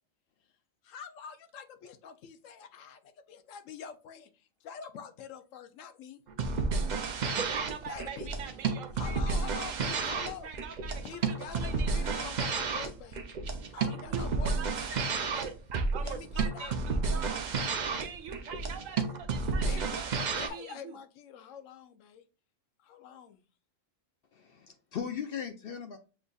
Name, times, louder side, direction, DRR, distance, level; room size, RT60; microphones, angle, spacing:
voice 1, 0.8-6.2 7.9-8.3 8.9-10.5 11.0-13.2 13.7-15.5 16.0-16.8 19.6-20.0 20.4-22.2 22.8-23.4, left 7 dB, 80° left, 1.0 m, -46 dB
sound 1, 6.3-20.5, right 4 dB, 55° right, 0.5 m, -31 dB
voice 2, 7.4-12.6 13.7-17.4 17.9-21.0, right 7 dB, 90° right, 1.1 m, -43 dB
voice 3, 24.3-26.0, left 7 dB, 60° left, 0.6 m, -38 dB
7.1 x 2.6 x 2.3 m
omnidirectional pair, 1.3 m